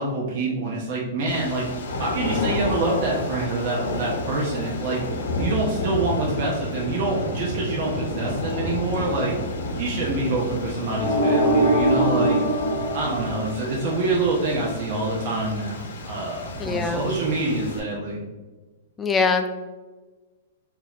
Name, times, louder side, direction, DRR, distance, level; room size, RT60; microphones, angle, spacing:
voice 1, 0.0-1.7 2.0-5.0 5.4-9.4 9.8-12.4 12.9-18.2, right 2 dB, 50° right, -3 dB, 0.7 m, -26 dB
sound 1, 1.3-17.8, left 1 dB, 80° left, 0.7 m, -31 dB
sound 2, 11.0-14.0, right 1 dB, 50° left, 1.1 m, -22 dB
voice 2, 16.6-17.1 19.0-19.5, left 4 dB, 15° left, 6 dB, 0.3 m, -22 dB
4.1 x 2.7 x 2.4 m, 1.2 s
hypercardioid pair, 140°, 0 cm